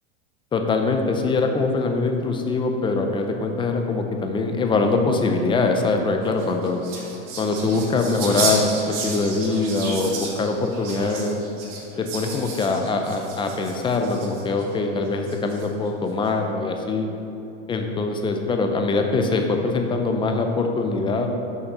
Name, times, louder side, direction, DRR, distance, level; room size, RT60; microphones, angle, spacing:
voice 1, 0.5-6.8 7.4-11.4 12.0-17.1 17.7-21.3, left 3 dB, 15° left, 4 dB, 0.5 m, -23 dB
sound 1, 6.3-14.7 15.3-15.9, right 4 dB, 45° right, 1.7 m, -32 dB
6.7 x 5.7 x 5.3 m, 2.9 s
supercardioid pair, 140°, 35 cm